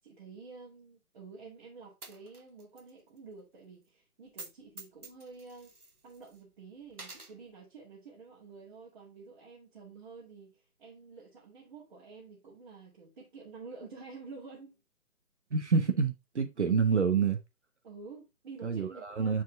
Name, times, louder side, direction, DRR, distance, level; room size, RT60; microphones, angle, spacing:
voice 1, 0.0-5.7 6.0-14.8 17.8-19.4, right 4 dB, 35° right, 2.1 m, -50 dB
Coin (dropping), 2.0-2.9 3.2-3.3 4.3-4.5 4.8-6.4 6.9-7.3, right 3 dB, 85° right, 1.4 m, -48 dB
voice 2, 15.5-17.4 18.6-19.4, right 5 dB, 50° right, 1.1 m, -27 dB
7.0 x 4.6 x 3.6 m
figure-of-eight pair, 145°, 44 cm